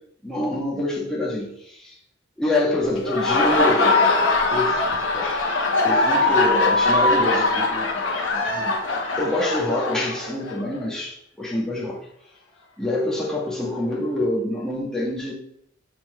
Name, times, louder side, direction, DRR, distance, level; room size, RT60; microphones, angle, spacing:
voice 1, 0.2-2.0 2.4-4.8 5.1-5.4 5.8-8.0 8.3-12.0 12.8-15.3, left 1 dB, 5° left, -6 dB, 1.5 m, -26 dB
Laughter, 2.9-10.6, left 2 dB, 75° left, 1.2 m, -21 dB
7.0 x 4.2 x 3.4 m, 0.71 s
head